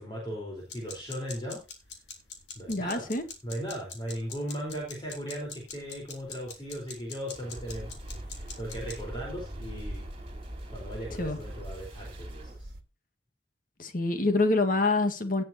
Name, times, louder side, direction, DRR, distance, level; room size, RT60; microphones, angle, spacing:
voice 1, 0.0-1.6 2.6-3.1 3.4-7.9 8.2-10.0 10.7-12.7, equal, 25° left, -2 dB, 4.4 m, -37 dB
sound 1, 0.6-9.0, left 5 dB, 75° left, 3.8 m, -44 dB
voice 2, 2.7-3.2 11.2-11.4 13.8-15.4, left 2 dB, 50° left, 7 dB, 1.8 m, -26 dB
sound 2, 7.3-12.5, right 1 dB, 30° right, 3.7 m, -48 dB
sound 3, 7.6-12.8, right 1 dB, 55° right, 1.7 m, -41 dB
18.0 x 7.7 x 2.9 m, 0.27 s
head